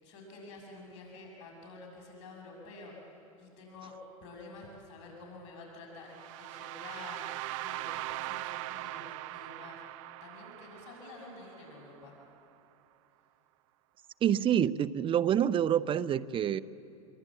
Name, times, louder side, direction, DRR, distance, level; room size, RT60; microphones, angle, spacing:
voice 1, 0.0-3.1 3.4-9.8 10.2-12.1, left 2 dB, 65° left, 0 dB, 6.6 m, -49 dB
sound 1, 6.1-12.0, right 17 dB, 65° right, 0.6 m, -41 dB
voice 2, 14.2-16.6, right 9 dB, 30° right, 16 dB, 0.7 m, -27 dB
26.5 x 23.0 x 8.5 m, 2.7 s
hypercardioid pair, 105°, 18 cm